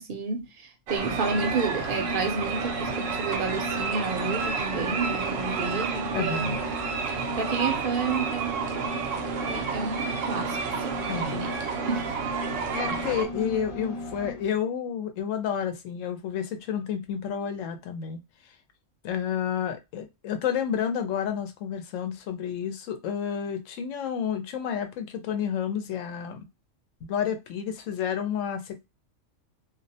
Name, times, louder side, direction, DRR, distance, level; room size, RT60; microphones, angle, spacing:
voice 1, 0.0-6.6 7.4-8.9 9.5-11.5 11.9-12.1 12.6-12.7, right 4 dB, 55° right, 0.6 m, -31 dB
sound 1, 0.9-13.2, right 6 dB, 80° right, 0.9 m, -31 dB
sound 2, 1.0-14.5, left 2 dB, 50° left, 0.9 m, -37 dB
voice 2, 6.1-6.6 11.1-11.4 12.7-18.2 19.0-26.4 27.0-28.8, left 8 dB, 80° left, 0.9 m, -30 dB
2.4 x 2.0 x 2.7 m
omnidirectional pair, 1.3 m